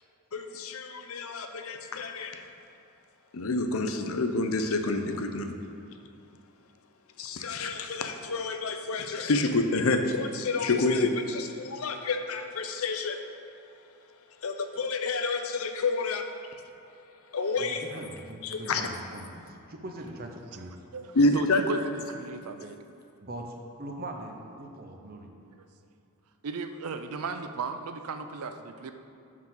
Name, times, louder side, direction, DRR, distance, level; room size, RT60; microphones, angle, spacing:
voice 1, 0.3-2.4 3.3-5.5 7.2-13.2 14.4-16.2 17.3-17.8 18.4-18.8 21.1-21.6, left 3 dB, 70° left, 6 dB, 0.6 m, -28 dB
voice 2, 17.6-20.7 23.2-25.3, right 1 dB, 40° right, 2 dB, 0.7 m, -41 dB
voice 3, 20.9-22.8 25.6-25.7 26.4-28.9, right 4 dB, 85° right, 8 dB, 0.5 m, -36 dB
11.5 x 4.7 x 3.9 m, 2.6 s
head